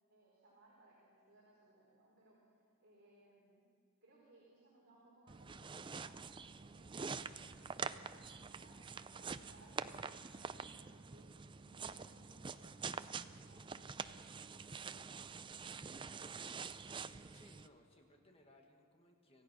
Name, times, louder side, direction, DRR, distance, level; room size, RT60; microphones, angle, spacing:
voice 1, 0.1-3.6 4.0-6.2 6.5-15.8, right 2 dB, 45° right, -6 dB, 4.7 m, -66 dB
sound 1, 5.3-17.7, right 5 dB, 20° right, 0.4 m, -46 dB
voice 2, 17.3-19.4, left 1 dB, 25° left, 3 dB, 1.6 m, -65 dB
26.5 x 16.0 x 6.1 m, 2.3 s
head